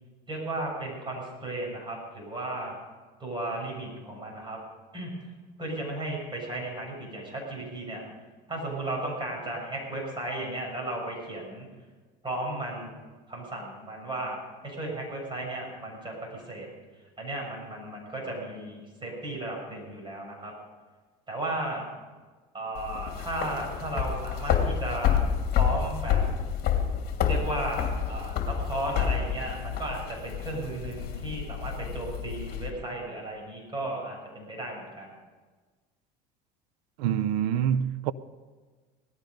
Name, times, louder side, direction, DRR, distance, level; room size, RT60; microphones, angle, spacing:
voice 1, 0.3-2.8 3.2-4.6 4.9-5.1 5.6-8.0 8.5-11.7 12.2-12.9 13.3-16.7 17.2-20.5 21.3-21.8 22.5-25.2 25.6-26.2 27.2-35.1, right 1 dB, 25° right, 6.9 m, -35 dB
Heavy Footsteps, 22.8-32.7, left 8 dB, 50° left, 2.5 m, -29 dB
voice 2, 37.0-38.1, right 9 dB, 85° right, 0.7 m, -26 dB
18.5 x 13.5 x 5.3 m
supercardioid pair, 105°, 21 cm